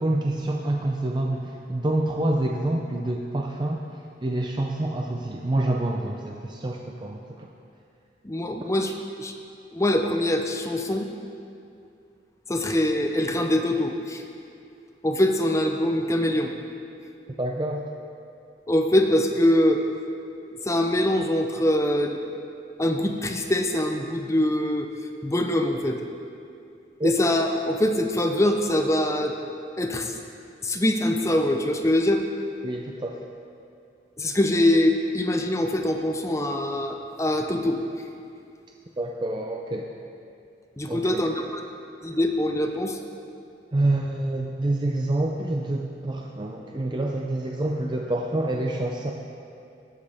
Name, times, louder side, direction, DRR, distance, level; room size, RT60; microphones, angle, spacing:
voice 1, 0.0-3.8 4.2-7.5 17.4-17.8 27.0-27.1 32.6-33.3 39.0-39.9 40.9-41.3 43.7-49.1, right 1 dB, 25° right, 0 dB, 0.5 m, -27 dB
voice 2, 8.2-8.9 9.2-9.3 9.7-11.1 12.5-14.2 15.0-16.5 18.7-19.8 20.6-22.2 22.8-24.9 25.2-26.0 27.0-29.3 29.8-30.1 30.6-32.3 34.2-37.8 40.8-41.6 42.0-43.0, left 1 dB, 15° left, 4 dB, 0.6 m, -23 dB
18.5 x 7.5 x 3.5 m, 2.5 s
head